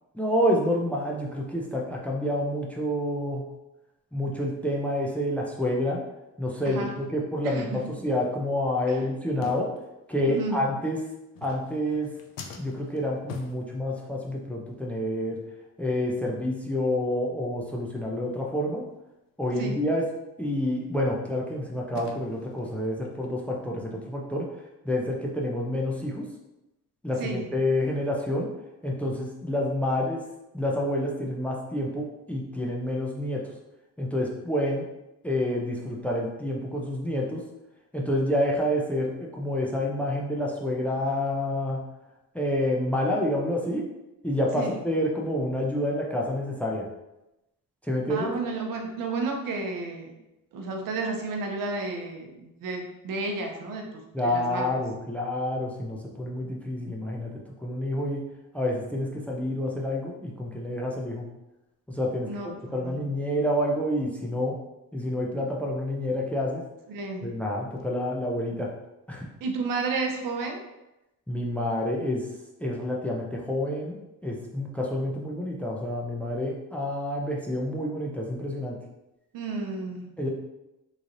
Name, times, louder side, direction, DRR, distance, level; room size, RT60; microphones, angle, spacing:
voice 1, 0.1-3.4 4.1-6.0 6.4-9.7 10.1-11.0 11.4-12.1 12.6-15.4 15.8-18.8 19.4-20.0 20.4-24.5 24.8-26.2 27.0-28.5 28.8-30.2 30.5-33.4 34.0-34.9 35.2-37.4 37.9-41.8 42.3-43.8 44.2-46.9 47.9-48.3 54.1-58.2 58.5-61.2 61.9-64.5 64.9-66.6 67.2-68.7 69.1-69.3 71.3-72.2 72.6-74.0 74.2-78.8 80.2-80.3, left 1 dB, 5° left, -1 dB, 0.5 m, -28 dB
sound 1, 6.9-7.1 7.7-8.8 9.4-10.3 11.2-14.4 14.7-14.9 15.2-15.4 15.9-16.0 16.3-16.5 16.9-17.0 17.4-17.5 17.9-18.0 20.0-20.1 20.6-23.1, left 5 dB, 75° left, 0.6 m, -46 dB
voice 2, 7.4-7.8 8.9-9.0 10.3-10.6 19.6-19.8 27.2-27.4 44.6-44.8 48.1-50.1 50.5-54.7 62.3-63.0 66.9-67.3 69.4-70.6 79.3-80.1, right 3 dB, 75° right, 2 dB, 0.8 m, -32 dB
3.8 x 3.2 x 2.6 m, 0.94 s
cardioid pair, 110°, 34 cm